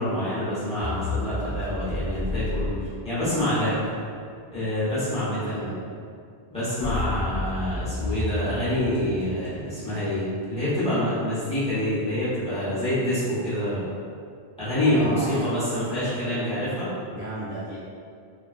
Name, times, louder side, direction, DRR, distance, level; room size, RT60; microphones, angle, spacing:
voice 1, 0.0-2.7 3.0-3.8 4.5-5.7 6.5-10.2 10.5-13.8 14.6-16.9, left 1 dB, 5° left, -13 dB, 0.9 m, -26 dB
sound 1, 0.8-3.8 6.8-10.2, left 2 dB, 25° left, 0.3 m, -31 dB
voice 2, 5.4-5.9 14.9-15.4 17.1-17.8, right 1 dB, 70° right, -10 dB, 0.8 m, -35 dB
2.4 x 2.2 x 2.3 m, 2.3 s
omnidirectional pair, 1.1 m